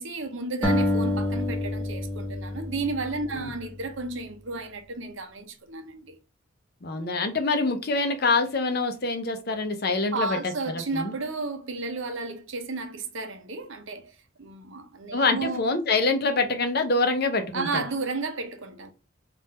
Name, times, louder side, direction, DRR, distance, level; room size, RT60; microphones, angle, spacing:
voice 1, 0.0-6.2 10.1-15.6 17.5-18.9, right 3 dB, 70° right, 0.8 m, -33 dB
sound 1, 0.6-3.8, left 1 dB, 5° left, 0.7 m, -28 dB
voice 2, 6.8-11.1 15.1-17.8, left 3 dB, 50° left, 0.7 m, -25 dB
3.5 x 2.5 x 4.2 m
head